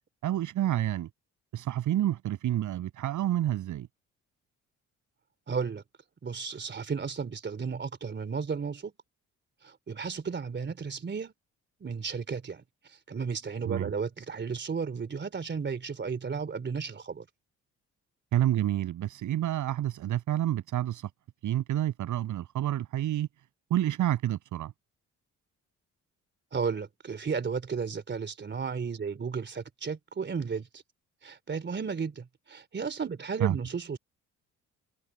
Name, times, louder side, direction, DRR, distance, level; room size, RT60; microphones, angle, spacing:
voice 1, 0.2-1.1 1.5-3.9 13.7-13.9 18.3-21.1 21.4-23.3 23.7-24.7 33.4-33.6, right 12 dB, 80° right, 7.9 m, -29 dB
voice 2, 5.5-5.8 6.2-8.9 9.6-11.3 11.8-12.6 13.1-17.3 26.5-30.8 31.2-34.0, right 5 dB, 35° right, 3.3 m, -34 dB
cardioid pair, 90°, 30 cm